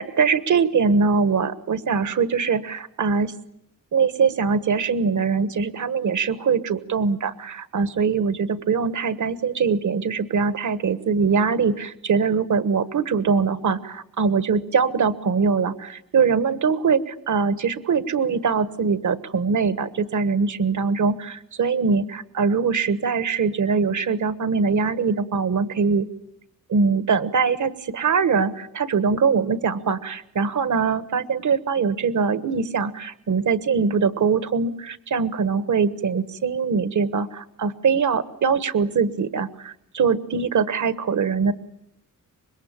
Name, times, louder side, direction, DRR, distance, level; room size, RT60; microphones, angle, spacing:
voice 1, 0.0-3.3 3.9-26.1 26.7-41.5, right 5 dB, 60° right, 13 dB, 1.4 m, -22 dB
25.5 x 22.0 x 8.9 m, 0.72 s
wide cardioid pair, 175°, 34 cm